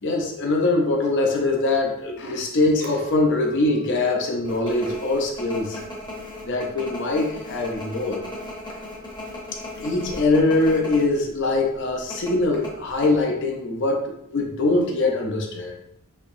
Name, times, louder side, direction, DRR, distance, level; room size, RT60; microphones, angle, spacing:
voice 1, 0.0-5.8 6.4-8.2 9.8-15.8, left 2 dB, 55° left, 1 dB, 0.6 m, -23 dB
Chink clink, 2.8-8.2, equal, 45° right, 0.4 m, -41 dB
sound 1, 4.5-11.1 11.4-11.5 12.1-13.1, left 1 dB, 20° left, 0.8 m, -36 dB
4.3 x 2.9 x 2.6 m, 0.75 s
head